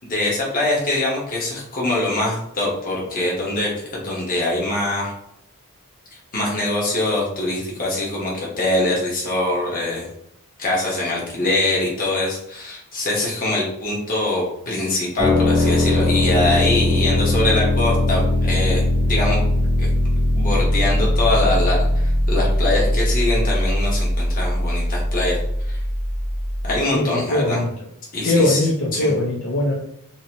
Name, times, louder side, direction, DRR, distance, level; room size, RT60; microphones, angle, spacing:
voice 1, 0.0-5.1 6.3-10.1 10.6-18.8 19.1-19.9 20.3-25.4 26.6-27.6 28.1-28.7 28.9-29.1, left 2 dB, 40° left, -4 dB, 1.1 m, -23 dB
sound 1, 15.2-26.8, left 1 dB, 5° right, 0.9 m, -20 dB
voice 2, 26.9-27.7 28.2-29.7, left 1 dB, 65° left, -5 dB, 0.7 m, -20 dB
2.9 x 2.7 x 2.9 m, 0.74 s
head